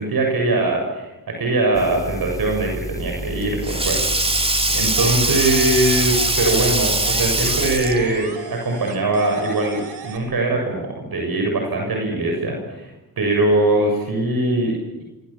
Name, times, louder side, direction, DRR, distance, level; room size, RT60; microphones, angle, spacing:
voice 1, 0.0-15.0, right 2 dB, 65° right, 1 dB, 7.1 m, -22 dB
sound 1, 1.7-7.8, right 1 dB, 10° left, 5.3 m, -31 dB
Sink (filling or washing), 3.0-8.2, right 2 dB, 15° right, 2.1 m, -22 dB
sound 2, 5.0-6.8 7.0-10.2, right 5 dB, 80° right, 4.3 m, -37 dB
28.5 x 23.5 x 7.3 m, 1.1 s
cardioid pair, 70°, 39 cm